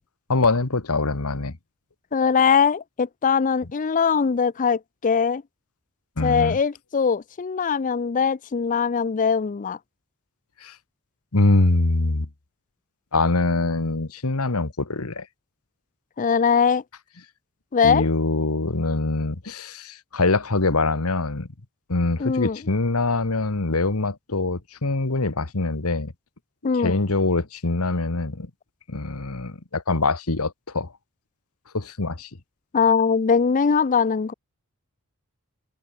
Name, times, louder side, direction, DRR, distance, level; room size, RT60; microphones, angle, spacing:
voice 1, 0.3-1.5 6.2-6.6 10.6-10.7 11.3-12.3 13.1-15.3 17.8-21.5 21.9-26.1 26.8-28.5 28.9-30.9 31.7-32.3, left 2 dB, 75° left, 1.6 m, -23 dB
voice 2, 2.1-5.4 6.2-9.8 16.2-16.8 17.7-18.0 22.2-22.6 26.6-27.0 32.7-34.3, left 6 dB, 35° left, 0.4 m, -21 dB
head